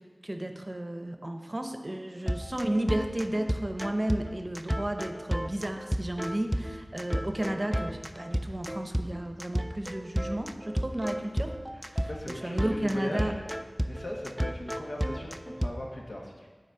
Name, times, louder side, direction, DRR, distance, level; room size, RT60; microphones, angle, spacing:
voice 1, 0.2-12.1 12.4-13.3, right 1 dB, 35° right, 5 dB, 0.7 m, -33 dB
sound 1, 2.3-15.7, equal, 5° right, 0.4 m, -32 dB
voice 2, 12.0-13.4 13.9-16.5, left 1 dB, 80° left, -1 dB, 1.3 m, -38 dB
10.0 x 4.1 x 5.5 m, 1.5 s
wide cardioid pair, 45°, 0 cm